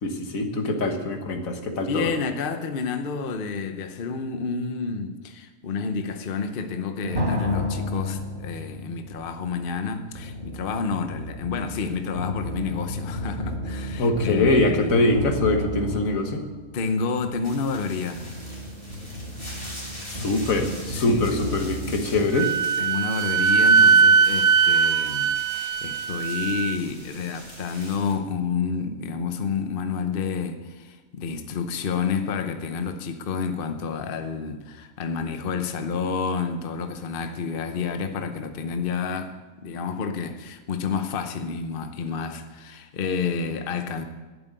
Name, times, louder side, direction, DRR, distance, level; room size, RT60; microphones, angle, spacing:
voice 1, 0.0-2.1 14.0-16.4 20.1-22.5, left 2 dB, 75° left, 5 dB, 1.8 m, -23 dB
voice 2, 1.9-15.0 16.7-18.3 20.9-21.3 22.8-25.3 25.6-39.3 39.6-44.0, left 5 dB, 45° left, 7 dB, 0.9 m, -29 dB
sound 1, 7.0-22.2, left 1 dB, 35° right, 2.3 m, -32 dB
sound 2, 17.4-28.1, equal, 20° left, 3.7 m, -42 dB
Wind instrument woodwind instrument, 22.3-26.8, right 5 dB, 75° right, 0.4 m, -20 dB
12.0 x 7.6 x 9.3 m, 1.2 s
omnidirectional pair, 1.4 m